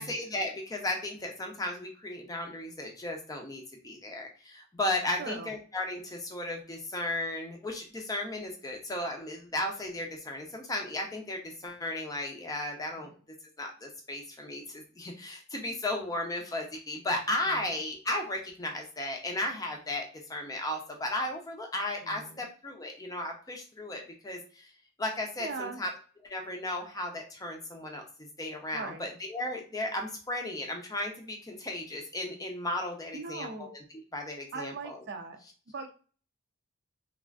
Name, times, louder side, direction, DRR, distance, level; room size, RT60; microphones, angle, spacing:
voice 1, 0.0-13.1 13.6-24.7 25.0-25.9 26.2-33.8 34.1-35.0, left 1 dB, 15° left, 2 dB, 0.5 m, -35 dB
voice 2, 5.2-5.5 12.9-13.1 17.4-17.7 22.0-22.4 25.4-25.8 28.7-29.1 33.1-33.7 34.5-35.4 35.7-35.9, right 4 dB, 50° right, 6 dB, 0.4 m, -40 dB
3.3 x 2.4 x 2.4 m, 0.39 s
head